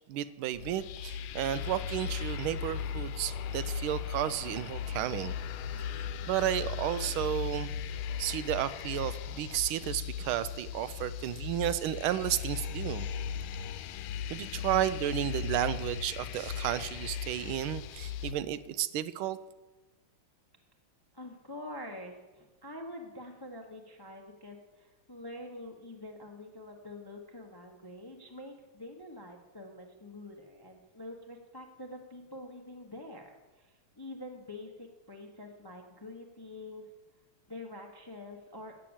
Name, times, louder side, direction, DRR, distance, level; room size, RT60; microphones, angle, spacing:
voice 1, 0.1-5.3 6.3-7.7 8.2-13.1 14.3-19.4, right 12 dB, 85° right, 15 dB, 1.4 m, -32 dB
sound 1, 0.5-18.3, left 7 dB, 85° left, 1.4 m, -37 dB
voice 2, 21.1-36.8 37.5-38.8, left 1 dB, 25° left, 3 dB, 0.5 m, -46 dB
8.5 x 7.5 x 8.7 m, 1.2 s
omnidirectional pair, 2.2 m